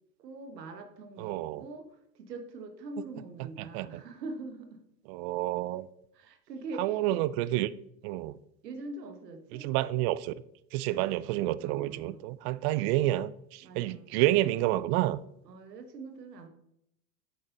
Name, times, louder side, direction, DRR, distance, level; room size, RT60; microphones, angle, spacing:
voice 1, 0.2-4.8 6.1-7.2 8.6-9.7 11.6-12.3 13.6-14.1 15.4-16.5, right 2 dB, 80° right, 1.5 m, -43 dB
voice 2, 1.2-1.6 3.4-4.0 5.1-5.9 6.8-7.7 8.0-8.4 9.5-10.3 10.7-15.2, right 15 dB, 40° right, 0.4 m, -29 dB
8.0 x 7.3 x 3.9 m
hypercardioid pair, 90°, 48 cm